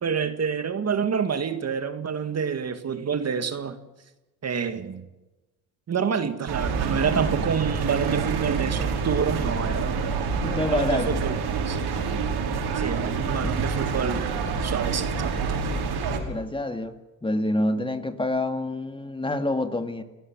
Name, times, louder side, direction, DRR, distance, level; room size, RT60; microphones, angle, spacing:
voice 1, 0.0-3.8 4.4-5.1 5.9-10.1 10.7-12.0 12.7-14.2 14.6-15.5, right 6 dB, 35° right, 1.9 m, -28 dB
sound 1, 6.5-16.2, right 5 dB, 60° right, 6.0 m, -27 dB
voice 2, 10.4-11.2 13.4-13.5 16.1-16.9 17.2-20.0, left 1 dB, 10° left, 2.1 m, -27 dB
29.5 x 17.0 x 7.4 m
supercardioid pair, 80°, 45 cm